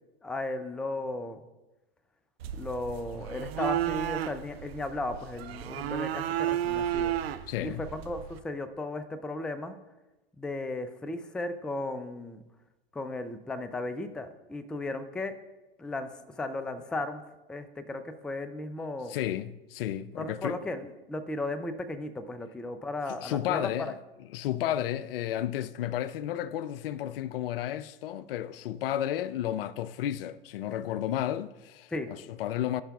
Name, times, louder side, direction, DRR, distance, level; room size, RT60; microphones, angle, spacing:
voice 1, 0.2-1.4 2.5-7.2 7.6-8.2 8.4-9.7 10.4-12.4 12.9-15.3 15.8-16.1 16.4-17.2 17.5-19.2 20.2-23.7 31.9-32.1, left 2 dB, 5° left, 0.3 m, -35 dB
sound 1, 2.4-8.4, right 11 dB, 75° right, 0.5 m, -33 dB
voice 2, 7.5-7.8 19.1-20.7 23.1-24.0 24.3-32.8, left 11 dB, 65° left, 0.4 m, -32 dB
12.5 x 5.6 x 2.3 m
hypercardioid pair, 95°, 30 cm